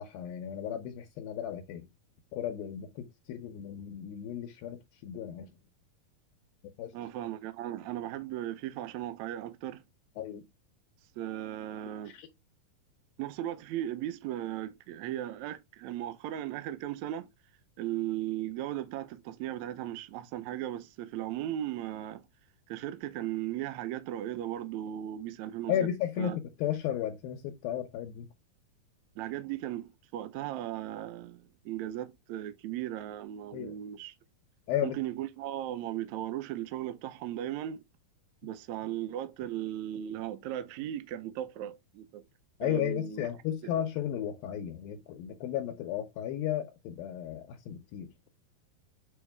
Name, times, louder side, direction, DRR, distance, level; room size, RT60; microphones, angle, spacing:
voice 1, 0.0-1.9 2.3-5.5 6.8-6.9 10.2-10.4 12.1-12.3 25.7-28.3 33.5-33.7 34.7-35.0 42.6-48.1, left 10 dB, 80° left, 2.6 m, -34 dB
voice 2, 6.9-9.8 11.2-12.1 13.2-17.3 17.8-22.3 22.7-25.7 26.2-26.4 29.2-34.1 34.8-37.8 38.4-42.2 42.6-43.3 43.6-43.7, right 12 dB, 80° right, 1.6 m, -37 dB
8.1 x 4.1 x 3.5 m
omnidirectional pair, 4.3 m